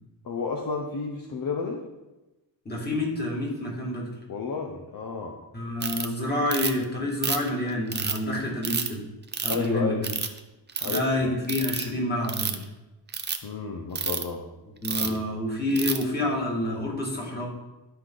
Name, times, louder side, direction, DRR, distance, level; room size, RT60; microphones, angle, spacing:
voice 1, 0.2-1.8 4.3-5.4 9.5-10.0 10.8-11.3 13.4-14.4 15.0-15.3, left 5 dB, 50° left, 1 dB, 0.8 m, -32 dB
voice 2, 2.7-4.1 5.5-9.0 9.4-10.0 10.8-12.6 14.8-17.5, left 1 dB, 20° left, -4 dB, 2.2 m, -28 dB
Ratchet pawl, 5.8-6.1 6.5-6.8 7.2-8.2 8.6-8.9 9.3-9.7 10.0-10.4 10.7-11.0 11.5-11.8 12.2-12.6 13.1-13.4 14.0-14.2 14.8-15.2 15.8-16.0, right 5 dB, 25° right, 0.5 m, -28 dB
12.5 x 4.9 x 3.9 m, 1.0 s
wide cardioid pair, 180°, 46 cm